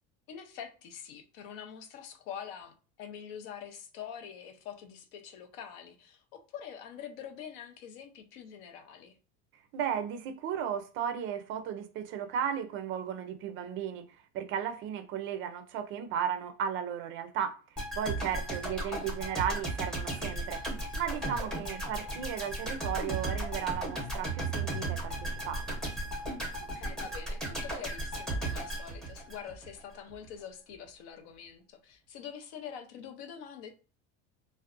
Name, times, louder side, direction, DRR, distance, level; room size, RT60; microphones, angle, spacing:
voice 1, 0.3-9.1 18.6-19.1 26.6-33.7, left 8 dB, 65° left, 0.6 m, -45 dB
voice 2, 9.7-14.0 14.3-17.6 18.0-25.8, right 8 dB, 40° right, 0.4 m, -35 dB
sound 1, 17.8-29.8 30.1-30.2, right 2 dB, ahead, 0.7 m, -35 dB
2.6 x 2.1 x 2.4 m
cardioid pair, 150°, 33 cm